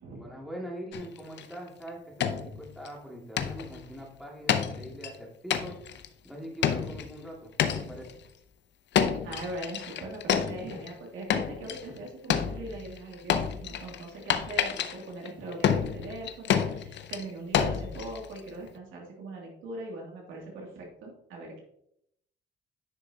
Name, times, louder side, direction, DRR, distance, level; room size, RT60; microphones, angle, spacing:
voice 1, 0.1-5.8 6.2-7.5 7.8-8.1, equal, ahead, -2 dB, 2.3 m, -42 dB
sound 1, 0.9-1.5 1.9-2.0 2.2-2.9 3.4-3.8 4.5-5.1 5.5-6.1 6.6-7.2 7.6-8.1 8.9-10.9 11.3-12.0 12.3-18.5, left 8 dB, 65° left, 0.7 m, -29 dB
voice 2, 9.2-21.6, right 2 dB, 85° right, -1 dB, 2.6 m, -40 dB
10.0 x 6.3 x 2.9 m, 0.75 s
cardioid pair, 90°, 20 cm